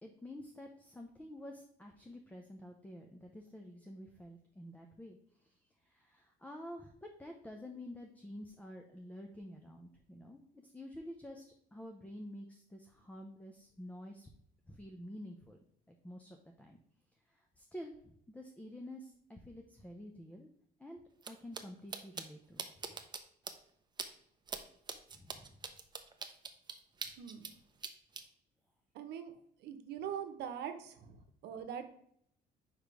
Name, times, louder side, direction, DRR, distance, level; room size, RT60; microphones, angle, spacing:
voice 1, 0.0-6.9 7.2-14.3 14.7-15.6 15.9-16.8 17.3-20.5 20.8-21.0 21.3-22.7 25.1-25.6, left 1 dB, 10° left, 2 dB, 0.7 m, -49 dB
sound 1, 21.2-21.3 21.5-21.6 21.9-22.2 22.6-23.2 23.5-23.6 24.0-24.1 24.5-24.6 24.9-27.5 27.8-28.2, right 5 dB, 25° right, 0.7 m, -41 dB
voice 2, 27.2-27.5 28.9-29.3 29.6-31.8, right 8 dB, 80° right, 9 dB, 0.9 m, -43 dB
5.1 x 5.0 x 4.7 m, 0.68 s
cardioid pair, 110°, 17 cm